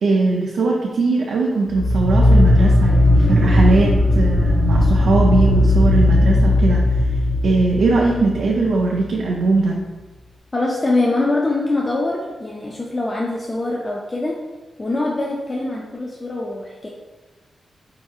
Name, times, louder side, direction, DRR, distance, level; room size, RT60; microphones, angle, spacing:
voice 1, 0.0-7.0 7.4-9.8, right 3 dB, 80° right, -2 dB, 0.4 m, -20 dB
sound 1, 1.7-9.0, left 1 dB, 85° left, 1.4 m, -16 dB
voice 2, 10.5-14.4 14.8-16.9, left 2 dB, 25° left, -3 dB, 0.3 m, -23 dB
4.5 x 2.8 x 2.3 m, 1.2 s
wide cardioid pair, 150°, 0 cm